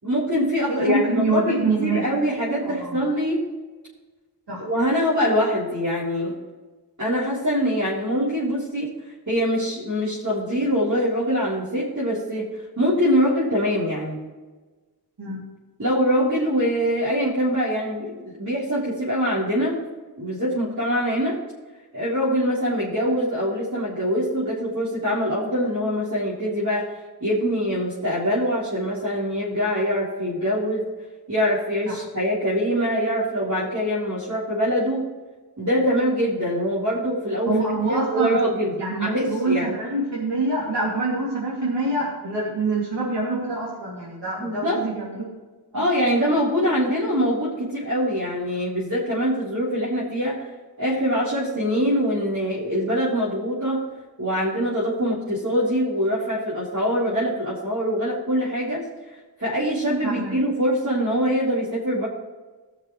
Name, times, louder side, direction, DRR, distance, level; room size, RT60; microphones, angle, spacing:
voice 1, 0.0-3.4 4.6-6.3 7.0-8.9 9.3-12.5 12.8-14.2 15.8-19.8 20.2-21.4 21.9-26.9 27.2-30.8 31.3-35.0 35.6-37.5 37.9-38.7 39.0-39.7 44.4-44.8 45.7-50.5 50.8-53.8 54.2-58.8 59.4-62.1, equal, 45° right, -10 dB, 3.8 m, -23 dB
voice 2, 0.7-2.0 2.6-3.0 4.5-4.6 15.2-15.4 31.9-32.0 37.5-38.4 38.8-45.3 45.7-45.9 60.0-60.4, right 2 dB, 80° right, -6 dB, 2.9 m, -26 dB
19.0 x 6.6 x 3.3 m, 1.3 s
wide cardioid pair, 70°, 42 cm